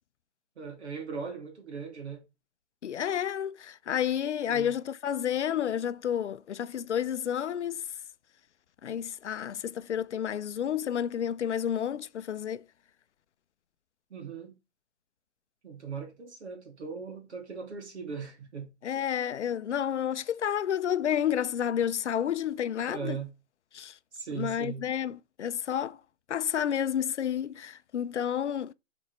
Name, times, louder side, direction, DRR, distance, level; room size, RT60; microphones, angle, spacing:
voice 1, 0.6-2.2 4.5-4.7 14.1-14.5 15.6-18.7 22.9-23.3 24.1-24.9, right 5 dB, 70° right, 2.7 m, -39 dB
voice 2, 2.8-7.8 8.8-12.6 18.8-23.2 23.7-23.9 24.3-26.0 26.3-28.7, left 9 dB, 80° left, 0.6 m, -30 dB
7.3 x 4.2 x 3.1 m
hypercardioid pair, 140°, 35 cm